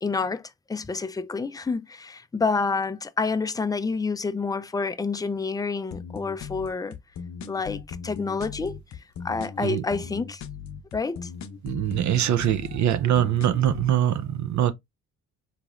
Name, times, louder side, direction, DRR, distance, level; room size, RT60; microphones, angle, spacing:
voice 1, 0.0-7.0 7.5-8.8 9.2-10.4 10.9-11.3, left 4 dB, 10° left, 0.4 m, -28 dB
sound 1, 5.9-13.9, left 6 dB, 55° left, 0.6 m, -39 dB
voice 2, 11.6-14.7, right 11 dB, 60° right, 0.5 m, -23 dB
4.0 x 3.0 x 2.4 m
cardioid pair, 75°, 33 cm